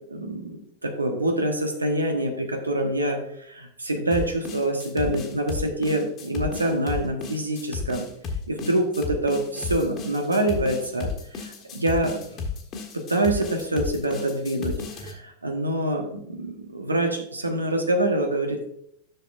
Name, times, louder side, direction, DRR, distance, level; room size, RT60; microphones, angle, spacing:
voice 1, 0.1-8.0 8.5-12.1 12.9-18.7, right 1 dB, 80° right, 4 dB, 1.2 m, -26 dB
sound 1, 4.1-15.1, left 5 dB, 30° left, 1.5 m, -33 dB
10.5 x 6.7 x 2.5 m, 0.71 s
figure-of-eight pair, 90°, 0 cm